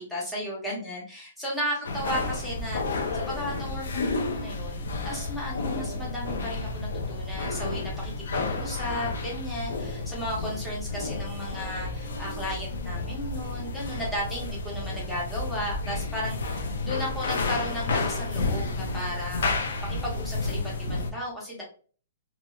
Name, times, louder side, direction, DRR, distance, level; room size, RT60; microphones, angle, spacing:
voice 1, 0.0-19.6 19.8-21.6, equal, ahead, -6 dB, 0.6 m, -35 dB
sound 1, 1.8-21.1, left 3 dB, 65° left, 0.5 m, -31 dB
3.0 x 2.1 x 2.3 m, 0.41 s
hypercardioid pair, 180°, 0 cm